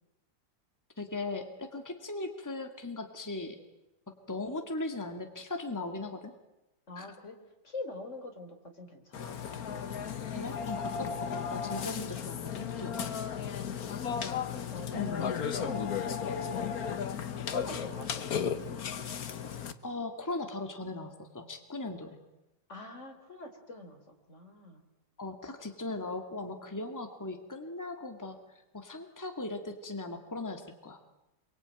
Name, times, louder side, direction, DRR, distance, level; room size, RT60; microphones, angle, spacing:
voice 1, 1.0-3.6 4.1-6.3 7.0-7.1 10.3-13.1 14.9-15.2 17.8-17.9 19.8-22.2 25.2-28.4 28.7-31.0, left 2 dB, 10° left, 5 dB, 2.2 m, -38 dB
voice 2, 6.9-7.4 7.6-9.4 13.1-14.0 14.7-16.7 17.5-18.4 22.7-24.8, left 2 dB, 40° left, 5 dB, 4.0 m, -44 dB
Burping eructation, 9.1-19.7, left 7 dB, 55° left, 1.6 m, -35 dB
26.5 x 23.5 x 9.1 m, 0.96 s
omnidirectional pair, 1.9 m